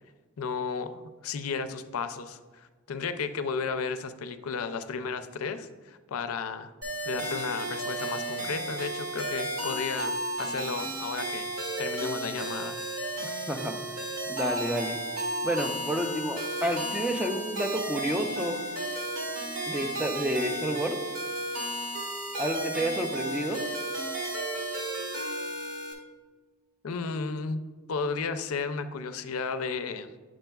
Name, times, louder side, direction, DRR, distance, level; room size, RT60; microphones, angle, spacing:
voice 1, 0.4-6.7 7.0-11.5 11.8-12.8 26.8-30.1, left 5 dB, 85° left, 10 dB, 0.4 m, -33 dB
sound 1, 6.8-25.9, right 1 dB, 90° right, 2.1 m, -33 dB
voice 2, 14.3-15.0 15.4-18.6 19.7-21.0 22.4-23.6, equal, 5° right, 3 dB, 0.4 m, -30 dB
8.9 x 6.2 x 2.3 m, 1.3 s
head